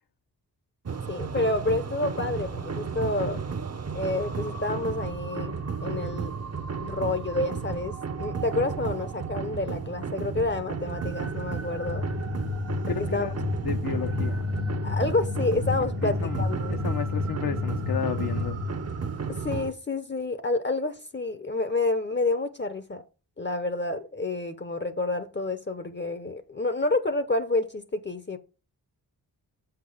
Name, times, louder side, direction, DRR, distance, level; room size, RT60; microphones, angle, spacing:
sound 1, 0.9-19.7, right 5 dB, 40° right, 0.8 m, -33 dB
voice 1, 1.1-3.4 3.9-5.5 5.8-6.3 6.8-12.0 12.9-13.3 14.8-16.8 19.3-23.0 23.4-28.4, left 2 dB, 30° left, 0.8 m, -29 dB
sound 2, 11.8-19.1, left 3 dB, 80° right, 1.4 m, -31 dB
voice 2, 12.9-13.3 13.6-14.5 16.0-16.4 16.8-18.6, left 7 dB, 65° left, 0.9 m, -32 dB
7.6 x 5.9 x 5.0 m
cardioid pair, 75°, 39 cm